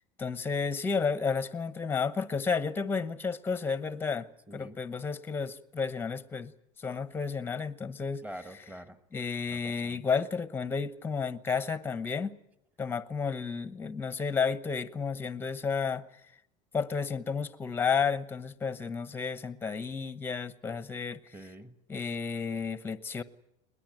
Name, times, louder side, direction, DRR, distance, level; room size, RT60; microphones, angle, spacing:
voice 1, 0.2-6.5 6.8-8.2 9.1-12.4 12.8-16.0 16.7-21.2 21.9-23.2, left 5 dB, 10° left, 0.9 m, -32 dB
voice 2, 4.5-4.8 8.2-9.0 9.5-10.0 21.3-21.7, right 1 dB, 10° right, 1.5 m, -45 dB
21.0 x 20.0 x 9.1 m
supercardioid pair, 145°, 17 cm